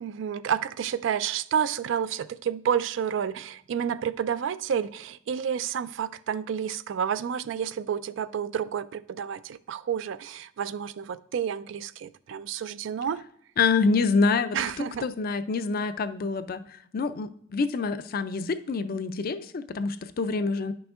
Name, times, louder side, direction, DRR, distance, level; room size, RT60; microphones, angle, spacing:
voice 1, 0.0-13.2 14.5-15.1, right 8 dB, 70° right, 0.3 m, -30 dB
voice 2, 13.6-20.7, left 4 dB, 50° left, 0.4 m, -27 dB
10.5 x 6.0 x 2.4 m
head